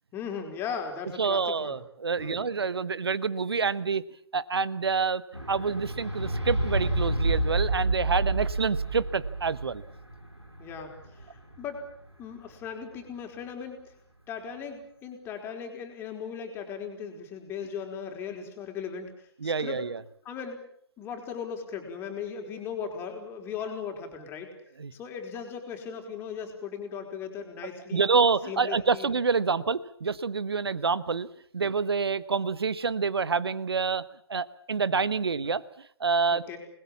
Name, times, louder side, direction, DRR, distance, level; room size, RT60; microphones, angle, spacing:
voice 1, 0.1-1.8 2.2-2.4 10.6-11.8 12.2-13.9 14.3-19.8 20.2-20.6 21.0-24.5 24.9-28.1 28.5-29.1 36.3-36.6, left 7 dB, 15° left, 4 dB, 4.7 m, -38 dB
voice 2, 1.2-4.0 4.3-5.2 5.5-9.8 19.4-20.0 24.8-24.9 27.9-31.3 31.5-36.6, right 5 dB, 65° right, 17 dB, 1.3 m, -27 dB
sound 1, 5.3-11.8 12.6-12.7, right 2 dB, 90° right, 5.9 m, -29 dB
28.5 x 20.5 x 7.3 m, 0.63 s
figure-of-eight pair, 130°, 14 cm